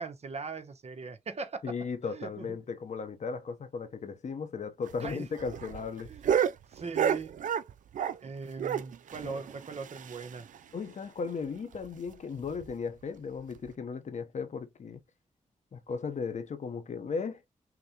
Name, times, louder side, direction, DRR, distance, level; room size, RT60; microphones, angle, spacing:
voice 1, 0.0-1.6 2.1-2.6 5.0-5.3 6.1-6.3 6.7-7.3 8.2-10.5, right 4 dB, 50° right, 0.9 m, -40 dB
voice 2, 1.6-6.1 9.2-9.4 10.7-15.0 15.7-17.4, left 5 dB, 60° left, 0.8 m, -36 dB
sound 1, 4.9-8.3 8.6-10.6 10.9-11.0 11.2-11.3 11.7-11.9 12.4-12.7 13.6-13.7, right 8 dB, 75° right, 0.4 m, -31 dB
5.8 x 2.2 x 2.8 m
cardioid pair, 65°, 13 cm